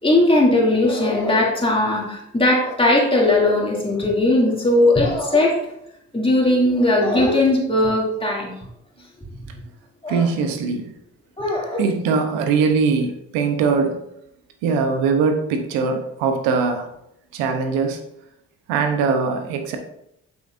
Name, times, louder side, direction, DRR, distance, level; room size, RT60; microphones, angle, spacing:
voice 1, 0.0-5.6 6.1-8.5 10.0-10.3 11.4-11.8, left 1 dB, 15° left, 2.5 m, -18 dB
voice 2, 10.1-10.9 11.8-14.0 14.6-16.9 17.3-18.0 18.7-19.8, right 5 dB, 85° right, 0.8 m, -21 dB
7.4 x 5.4 x 2.5 m
hypercardioid pair, 50°, 34 cm